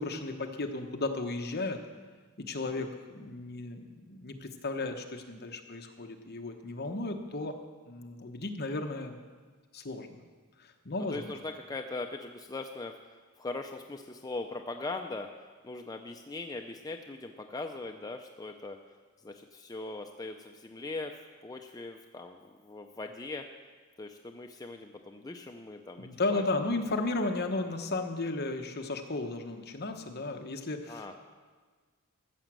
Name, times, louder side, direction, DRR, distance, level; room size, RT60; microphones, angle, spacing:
voice 1, 0.0-1.8 2.4-7.6 7.9-9.2 9.7-10.1 10.6-11.3 26.0-31.2, left 2 dB, 45° left, 4 dB, 1.2 m, -34 dB
voice 2, 11.0-15.3 15.6-18.8 19.2-23.5 24.0-26.4 27.6-27.7 30.9-31.2, left 2 dB, 15° left, 3 dB, 0.5 m, -40 dB
14.0 x 7.1 x 7.6 m, 1.5 s
head